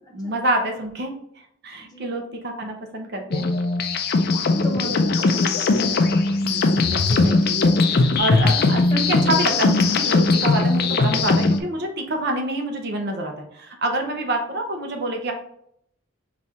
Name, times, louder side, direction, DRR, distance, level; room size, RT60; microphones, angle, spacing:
voice 1, 0.1-3.5 6.4-15.3, right 1 dB, 50° right, 3 dB, 0.6 m, -27 dB
voice 2, 1.8-2.2 4.3-5.7 8.2-8.6 8.9-9.6, equal, 20° left, 0 dB, 0.7 m, -34 dB
sound 1, 3.3-11.6, left 3 dB, 45° left, 0.4 m, -19 dB
4.1 x 2.4 x 4.2 m, 0.70 s
head